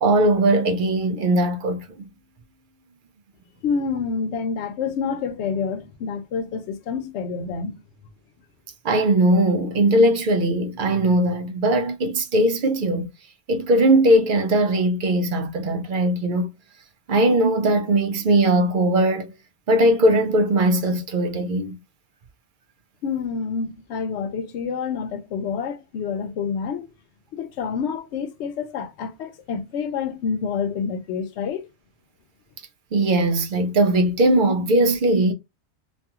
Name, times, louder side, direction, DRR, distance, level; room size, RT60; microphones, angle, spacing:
voice 1, 0.0-2.1 8.8-13.1 13.5-16.5 17.1-19.3 19.7-21.8 32.9-35.3, right 1 dB, 60° right, 0.6 m, -19 dB
voice 2, 3.6-7.8 23.0-26.9 27.3-31.7, left 6 dB, 80° left, 0.9 m, -28 dB
2.5 x 2.3 x 2.7 m
omnidirectional pair, 1.1 m